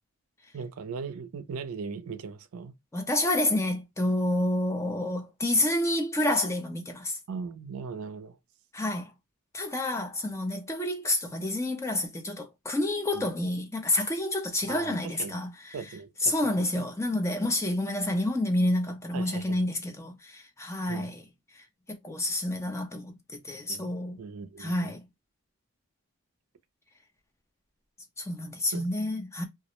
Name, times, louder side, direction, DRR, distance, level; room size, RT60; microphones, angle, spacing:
voice 1, 0.5-2.7 7.3-8.4 13.1-13.3 14.6-15.3 15.7-16.8 19.1-19.7 20.9-21.1 23.7-23.9 24.2-25.0 28.7-28.9, right 5 dB, 70° right, 0.4 m, -39 dB
voice 2, 2.9-7.2 8.7-9.1 9.5-15.8 16.2-21.2 21.5-24.2 24.6-25.0 28.2-29.4, left 1 dB, 10° left, 0.3 m, -29 dB
2.3 x 2.0 x 2.8 m
head